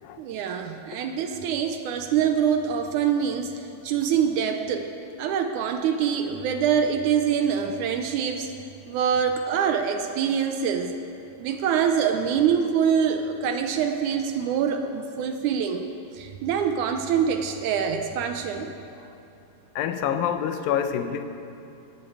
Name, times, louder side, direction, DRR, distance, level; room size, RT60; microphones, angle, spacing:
voice 1, 0.2-4.9 5.2-8.5 8.9-10.9 11.4-15.9 16.1-18.7, right 7 dB, 75° right, 7 dB, 1.9 m, -25 dB
voice 2, 19.8-21.2, left 9 dB, 90° left, 8 dB, 2.6 m, -26 dB
16.5 x 8.0 x 8.2 m, 2.8 s
omnidirectional pair, 3.9 m